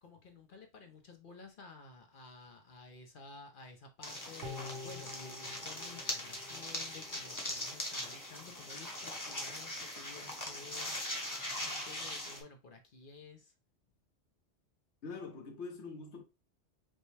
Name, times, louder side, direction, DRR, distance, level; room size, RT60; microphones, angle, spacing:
voice 1, 0.0-11.0 11.6-13.5, left 4 dB, 55° left, 0.8 m, -53 dB
sound 1, 4.0-12.4, left 1 dB, 20° left, 0.9 m, -41 dB
sound 2, 4.4-7.7 8.1-8.2, left 3 dB, 50° right, 1.1 m, -48 dB
voice 2, 15.0-16.2, left 4 dB, 75° left, 1.2 m, -44 dB
5.3 x 2.1 x 3.2 m
omnidirectional pair, 1.2 m